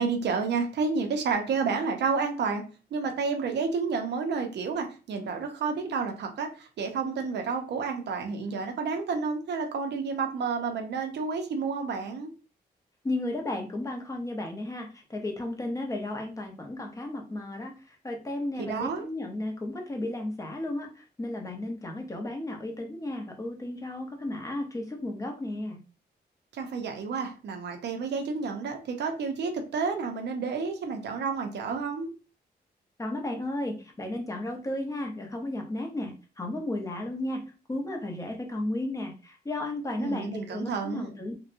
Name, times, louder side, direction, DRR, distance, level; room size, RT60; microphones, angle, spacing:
voice 1, 0.0-2.6 2.9-12.3 18.6-19.0 26.5-32.1 40.0-41.1, right 5 dB, 80° right, 4 dB, 0.6 m, -30 dB
voice 2, 13.0-17.8 18.0-25.8 33.0-41.3, left 1 dB, 20° left, 2 dB, 0.7 m, -34 dB
2.7 x 2.2 x 2.5 m, 0.34 s
cardioid pair, 105°, 17 cm